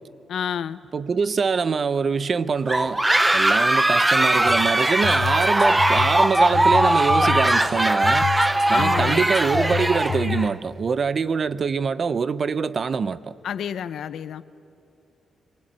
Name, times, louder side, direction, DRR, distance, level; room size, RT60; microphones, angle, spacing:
voice 1, 0.3-0.8 8.7-9.2 13.4-14.4, left 8 dB, 75° left, 0.9 m, -29 dB
voice 2, 0.9-3.0 3.3-8.3 8.7-13.3, right 5 dB, 40° right, 0.7 m, -24 dB
sound 1, 2.7-10.5, right 1 dB, 10° right, 0.7 m, -20 dB
sound 2, 4.5-10.5, left 7 dB, 45° left, 1.2 m, -30 dB
28.5 x 23.0 x 8.8 m
wide cardioid pair, 135°, 0 cm